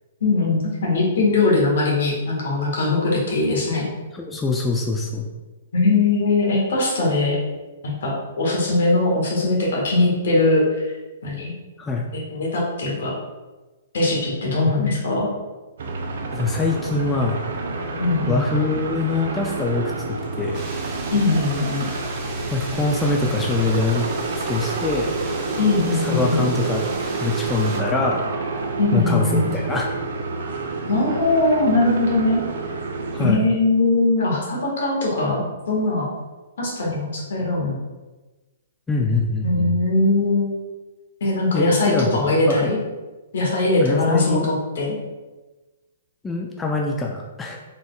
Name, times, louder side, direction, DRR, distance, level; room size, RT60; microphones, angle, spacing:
voice 1, 0.2-3.9 5.7-7.4 7.8-10.9 11.2-11.5 12.1-13.1 13.9-15.3 18.0-18.4 21.1-21.9 25.6-26.5 28.8-29.5 30.9-32.4 33.2-36.1 36.6-37.7 39.4-40.6 41.2-42.8 43.3-44.4 44.7-45.0, left 2 dB, 65° left, -3 dB, 1.3 m, -20 dB
voice 2, 4.1-5.3 11.8-12.1 16.3-17.4 18.3-20.6 22.5-24.1 24.4-25.1 26.0-26.9 27.2-28.2 28.9-29.9 33.1-33.4 38.9-39.7 41.5-42.7 43.8-44.5 46.2-47.6, left 3 dB, 15° left, 0 dB, 0.3 m, -24 dB
sound 1, 15.8-33.3, right 3 dB, 65° right, 0.6 m, -29 dB
sound 2, 20.5-27.8, right 2 dB, 35° right, 0.8 m, -36 dB
3.7 x 3.5 x 2.3 m, 1.2 s
hypercardioid pair, 125°, 0 cm